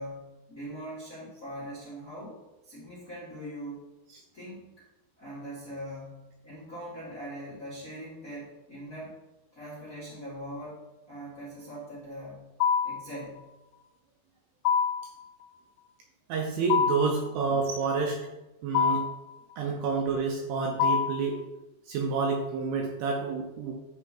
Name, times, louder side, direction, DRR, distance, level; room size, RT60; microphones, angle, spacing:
voice 1, 0.0-3.9 4.3-4.8 5.2-9.2 9.5-12.5 12.8-13.5, equal, 35° left, -9 dB, 1.3 m, -42 dB
sound 1, 12.6-13.1 14.7-15.1 16.7-17.2 18.7-19.2 20.8-21.3, left 7 dB, 90° left, 3.0 m, -25 dB
voice 2, 16.3-18.2 18.6-19.1 19.6-21.4 21.9-23.7, right 4 dB, 75° right, 0 dB, 2.5 m, -29 dB
10.0 x 3.7 x 4.4 m, 1.0 s
omnidirectional pair, 5.4 m